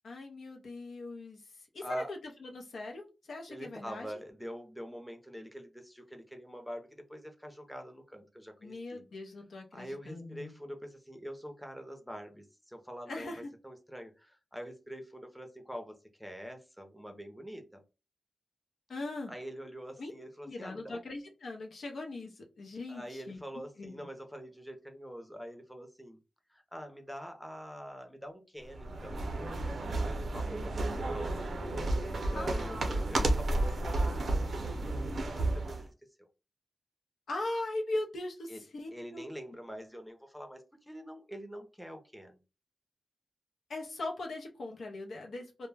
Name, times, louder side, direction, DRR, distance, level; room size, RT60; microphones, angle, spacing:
voice 1, 0.0-4.1 8.6-10.5 13.1-13.5 18.9-19.3 20.0-20.1 20.4-24.1 32.3-32.7 37.3-39.2 43.7-45.7, left 2 dB, 85° left, 2 dB, 0.5 m, -40 dB
voice 2, 1.8-2.1 3.5-9.0 9.7-17.8 19.3-21.0 22.9-26.2 26.5-29.5 29.8-31.6 32.3-35.9 38.5-38.6 38.9-42.4, equal, ahead, 4 dB, 0.5 m, -45 dB
sound 1, 28.7-35.9, right 2 dB, 70° right, 0.5 m, -32 dB
2.1 x 2.0 x 3.3 m, 0.30 s
wide cardioid pair, 100°, 0 cm